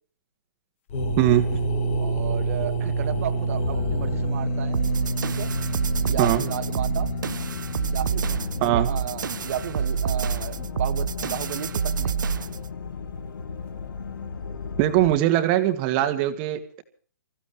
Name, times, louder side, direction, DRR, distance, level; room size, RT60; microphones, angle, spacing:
sound 1, 0.9-8.6, right 2 dB, 40° left, 2.8 m, -28 dB
voice 1, 1.2-1.6 6.2-6.4 8.6-8.9 14.8-16.8, right 14 dB, 30° right, 9 dB, 2.0 m, -21 dB
voice 2, 2.0-4.8 5.3-5.5 6.1-7.1 7.9-12.2, right 11 dB, 45° right, 10 dB, 1.7 m, -34 dB
sound 2, 3.1-15.2, left 5 dB, 85° left, 1.5 m, -35 dB
sound 3, 4.7-12.7, right 7 dB, 80° right, 0.7 m, -28 dB
27.5 x 15.0 x 3.2 m, 0.43 s
hypercardioid pair, 160°, 10 cm